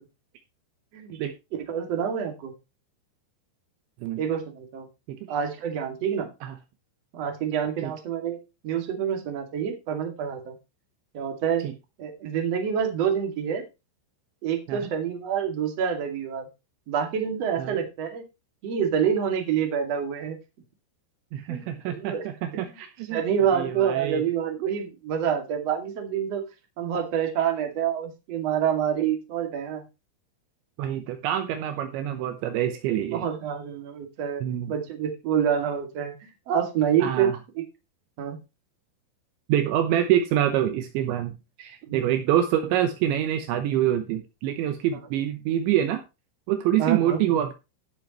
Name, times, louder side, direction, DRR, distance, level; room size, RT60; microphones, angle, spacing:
voice 1, 1.7-2.5 4.2-4.9 5.3-6.3 7.1-8.4 8.6-10.5 11.1-11.7 12.0-13.6 14.4-16.5 16.9-18.2 18.6-20.4 21.5-21.7 21.9-22.2 22.5-22.8 23.1-26.4 26.8-29.8 32.6-36.1 36.5-37.3 37.6-37.7 38.2-38.4 41.9-42.2 46.8-47.2, right 8 dB, 40° right, 4 dB, 2.6 m, -27 dB
voice 2, 21.3-23.2 23.5-24.2 30.8-33.3 34.4-34.7 37.0-37.4 39.5-46.0 46.5-47.5, right 11 dB, 75° right, 8 dB, 3.1 m, -26 dB
16.5 x 7.1 x 3.1 m, 0.26 s
omnidirectional pair, 5.7 m